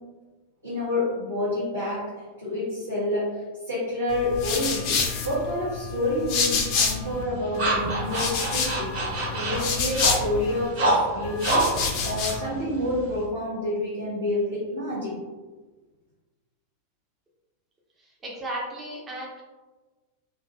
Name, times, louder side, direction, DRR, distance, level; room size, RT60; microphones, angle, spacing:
voice 1, 0.6-9.0 9.3-15.3, left 1 dB, 85° right, -13 dB, 0.8 m, -29 dB
sound 1, 4.1-7.2 7.5-10.7 11.2-12.5, left 5 dB, 45° left, 0.3 m, -28 dB
sound 2, 6.7-13.2, right 2 dB, 50° right, 1.0 m, -28 dB
voice 2, 18.0-19.4, right 1 dB, 20° right, -3 dB, 0.5 m, -35 dB
2.4 x 2.2 x 2.5 m, 1.3 s
figure-of-eight pair, 90°, 0 cm